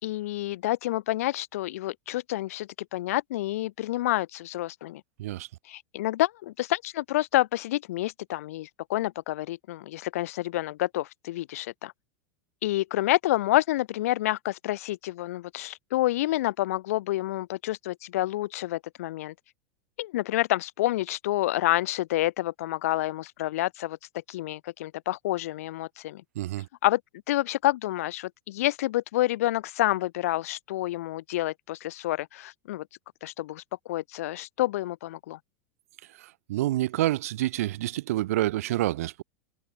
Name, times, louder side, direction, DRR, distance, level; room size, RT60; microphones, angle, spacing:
voice 1, 0.0-5.0 5.7-11.9 12.6-19.3 20.0-24.0 24.3-26.2 26.8-27.0 27.3-32.8 33.2-33.6 33.9-35.4, left 16 dB, 75° left, 3.2 m, -28 dB
voice 2, 26.3-26.7 36.2-39.2, right 15 dB, 75° right, 6.1 m, -28 dB
hypercardioid pair, 95°, 8 cm